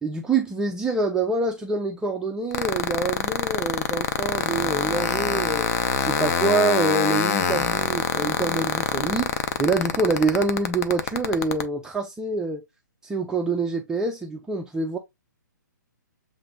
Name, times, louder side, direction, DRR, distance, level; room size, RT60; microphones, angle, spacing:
voice 1, 0.0-5.7 6.0-12.6 13.0-15.0, right 3 dB, 5° right, 0.4 m, -26 dB
sound 1, 2.5-11.6, left 7 dB, 50° left, 0.6 m, -24 dB
7.4 x 2.5 x 2.2 m
hypercardioid pair, 135°, 11 cm